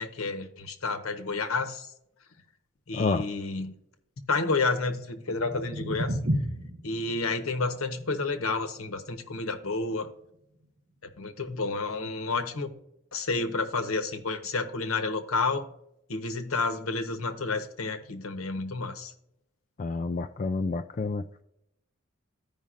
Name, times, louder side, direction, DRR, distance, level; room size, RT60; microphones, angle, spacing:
voice 1, 0.0-1.9 2.9-3.7 4.3-6.2 6.8-10.1 11.2-12.7 13.1-15.7 16.1-19.1, left 3 dB, 85° left, 1.0 m, -30 dB
voice 2, 2.9-3.2 19.8-21.2, left 3 dB, 35° left, 0.3 m, -29 dB
sound 1, 5.1-11.2, equal, 35° right, 1.3 m, -35 dB
14.5 x 5.1 x 2.5 m
head